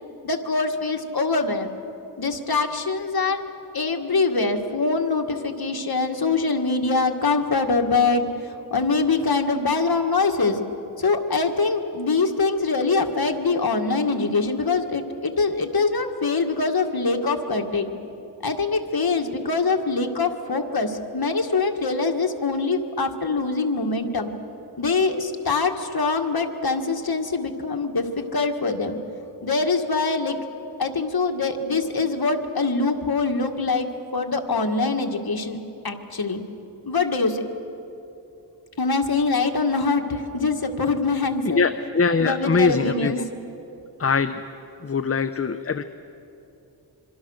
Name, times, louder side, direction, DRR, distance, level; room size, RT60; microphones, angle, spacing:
voice 1, 0.2-1.7 2.2-3.4 3.7-8.3 8.7-10.6 11.0-17.9 18.4-24.3 24.8-29.0 29.4-30.4 30.8-33.9 34.1-35.6 35.8-36.4 36.8-37.4 38.8-41.7 42.2-43.2, left 4 dB, 60° left, 3 dB, 1.9 m, -23 dB
voice 2, 41.5-43.3 44.0-44.4 44.8-45.8, left 4 dB, 35° left, 10 dB, 0.8 m, -22 dB
26.0 x 24.0 x 6.5 m, 2.9 s
wide cardioid pair, 55°, 41 cm